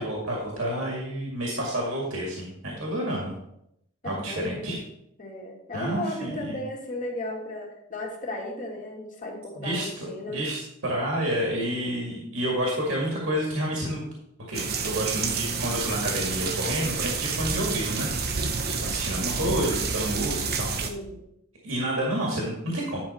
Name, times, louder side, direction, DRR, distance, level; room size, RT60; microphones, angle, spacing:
voice 1, 0.0-3.3 4.0-4.8 5.7-6.6 9.6-9.8 10.3-14.0 14.5-18.1 18.3-20.7 21.6-23.0, right 1 dB, 75° right, -2 dB, 2.1 m, -29 dB
voice 2, 4.0-4.8 5.2-10.4 20.8-21.2, left 1 dB, 40° left, -1 dB, 2.1 m, -35 dB
sound 1, 14.5-20.9, right 5 dB, 50° right, 0.9 m, -29 dB
10.0 x 6.0 x 4.3 m, 0.78 s
head